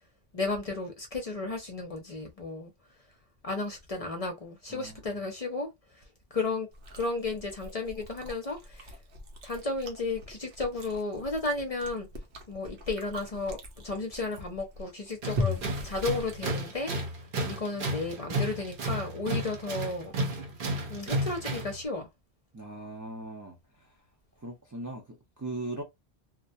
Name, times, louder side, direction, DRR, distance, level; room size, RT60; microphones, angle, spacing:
voice 1, 0.3-2.7 3.4-6.0 6.3-6.7 7.0-8.9 9.4-12.1 12.5-13.6 13.8-17.2 17.4-20.2 20.9-22.1, left 3 dB, 45° left, 0.6 m, -33 dB
voice 2, 4.7-5.2 22.5-23.9 24.4-25.8, right 2 dB, 25° right, 0.4 m, -40 dB
Chewing mastication, 6.7-16.9, left 2 dB, 90° right, 1.0 m, -40 dB
Tools, 15.2-21.8, right 1 dB, 60° right, 0.8 m, -33 dB
2.3 x 2.1 x 2.6 m
omnidirectional pair, 1.1 m